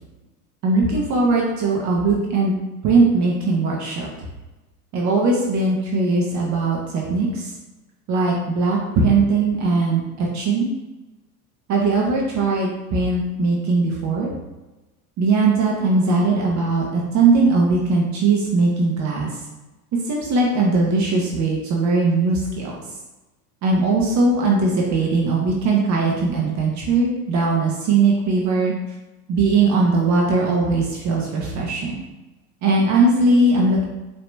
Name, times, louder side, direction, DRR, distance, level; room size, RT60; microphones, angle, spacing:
voice 1, 0.6-2.5 2.8-4.3 4.9-7.5 8.1-10.7 11.7-14.3 15.2-19.3 20.0-22.7 23.6-28.7 29.3-32.0 32.6-33.8, right 3 dB, 40° right, -2 dB, 1.0 m, -19 dB
4.8 x 2.9 x 3.3 m, 1.1 s
hypercardioid pair, 105°, 46 cm